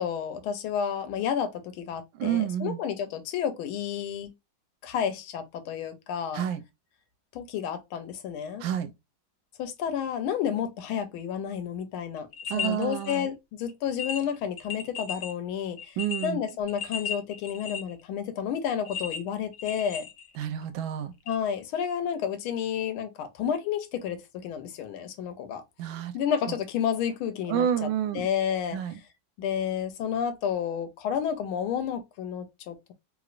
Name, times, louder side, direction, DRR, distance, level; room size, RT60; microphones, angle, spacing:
voice 1, 0.0-4.3 4.8-6.4 7.3-8.6 9.6-12.3 12.5-16.0 16.2-20.0 21.3-25.6 26.1-27.9 28.1-28.8 29.4-32.9, left 8 dB, 85° left, 1.5 m, -31 dB
voice 2, 2.2-2.8 6.3-6.6 8.6-8.9 12.5-13.3 16.0-16.4 20.4-21.1 25.8-26.1 26.5-26.6 27.5-28.3 28.7-29.0, right 10 dB, 75° right, 1.3 m, -29 dB
sound 1, 12.2-13.2 13.6-13.7 14.0-15.3 15.8-18.0 18.8-20.6 21.3-21.4, left 6 dB, 70° left, 0.9 m, -35 dB
3.2 x 3.0 x 2.4 m
omnidirectional pair, 2.2 m